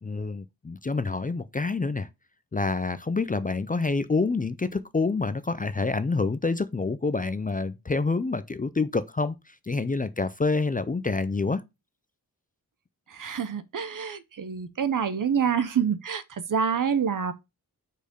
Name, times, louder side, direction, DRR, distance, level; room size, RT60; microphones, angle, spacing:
voice 1, 0.0-2.1 2.5-9.4 9.7-11.6, left 3 dB, 25° left, 0.4 m, -27 dB
voice 2, 13.1-16.2 16.5-17.3, right 7 dB, 60° right, 0.7 m, -27 dB
5.0 x 4.5 x 5.1 m
wide cardioid pair, 115°, 37 cm